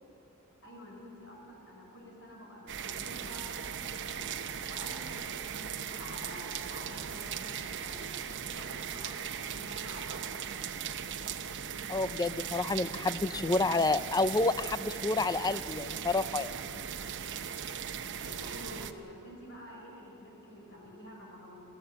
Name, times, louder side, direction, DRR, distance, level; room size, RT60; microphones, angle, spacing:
voice 1, 0.6-4.3 4.7-10.6 18.2-21.6, equal, 55° left, 0 dB, 5.7 m, -48 dB
sound 1, 2.7-18.9, right 8 dB, 55° right, 0.9 m, -38 dB
voice 2, 11.9-16.6, left 3 dB, 15° left, 14 dB, 0.4 m, -29 dB
28.5 x 14.5 x 7.9 m, 3.0 s
head